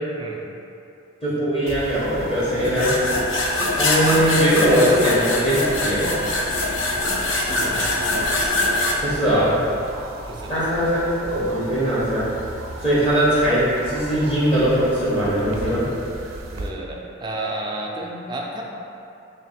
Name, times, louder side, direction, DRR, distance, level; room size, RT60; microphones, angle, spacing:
voice 1, 0.1-0.5 7.5-8.0 10.3-10.8 16.5-18.6, right 1 dB, 20° right, -1 dB, 0.3 m, -32 dB
voice 2, 1.2-3.0 3.7-6.2 9.0-9.6 10.5-12.4 12.8-15.9, equal, 25° left, -10 dB, 0.8 m, -20 dB
sound 1, 1.7-16.7, right 2 dB, 90° right, 0.4 m, -36 dB
sound 2, 2.6-8.9, left 2 dB, 70° left, 0.5 m, -23 dB
3.2 x 2.8 x 4.2 m, 2.7 s
head